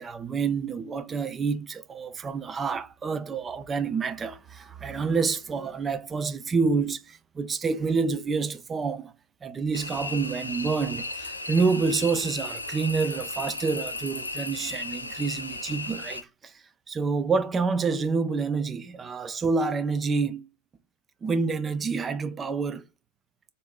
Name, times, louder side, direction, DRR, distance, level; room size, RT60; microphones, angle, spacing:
voice 1, 0.0-9.1 9.4-16.3 16.9-20.5 21.2-22.8, right 4 dB, 20° right, 0.3 m, -28 dB
sound 1, 9.7-16.2, left 2 dB, 80° left, 0.4 m, -35 dB
3.5 x 2.5 x 2.3 m
figure-of-eight pair, 90°, 0 cm